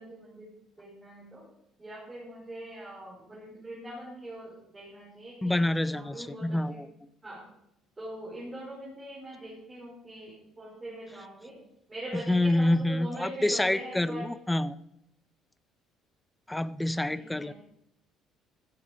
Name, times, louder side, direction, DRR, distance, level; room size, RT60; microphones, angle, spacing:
voice 1, 0.0-1.4 1.8-6.8 7.2-7.5 8.0-11.5 11.9-14.2 17.0-17.5, right 1 dB, 15° right, -7 dB, 4.9 m, -43 dB
voice 2, 5.4-6.9 12.3-14.8 16.5-17.5, left 1 dB, 5° left, 15 dB, 0.5 m, -27 dB
15.0 x 7.8 x 5.0 m, 0.79 s
cardioid pair, 130°, 0 cm